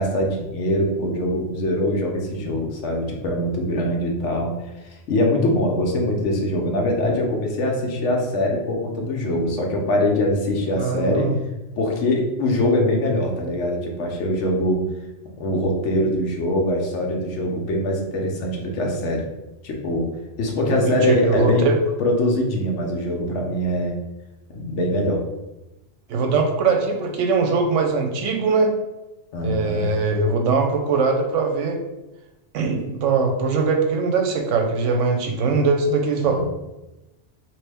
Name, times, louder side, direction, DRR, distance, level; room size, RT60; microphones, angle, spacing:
voice 1, 0.0-4.5 4.8-11.3 11.8-14.8 15.4-19.2 19.6-20.1 20.4-21.7 22.0-23.9 24.5-25.2 29.3-29.9 36.3-36.4, left 1 dB, 75° left, 1 dB, 1.0 m, -23 dB
voice 2, 10.8-11.4 20.7-21.7 26.1-28.7 29.4-31.8 32.5-36.4, right 4 dB, 85° right, 3 dB, 0.9 m, -21 dB
3.0 x 2.6 x 3.3 m, 1.0 s
omnidirectional pair, 1.3 m